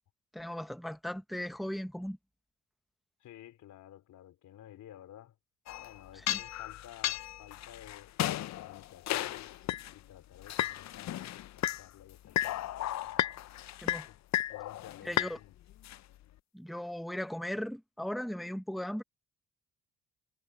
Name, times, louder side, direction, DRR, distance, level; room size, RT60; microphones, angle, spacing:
voice 1, 0.3-2.2 6.3-6.4 13.8-14.1 15.0-15.4 16.5-19.0, equal, ahead, 1.1 m, -37 dB
voice 2, 3.2-5.4 5.8-11.2 11.6-13.4 14.1-14.2 14.5-15.5, left 12 dB, 80° left, 3.9 m, -54 dB
sound 1, 5.7-9.9 10.4-11.9 12.2-15.3 15.7-16.0, left 14 dB, 65° left, 0.6 m, -34 dB
cardioid pair, 90°, 30 cm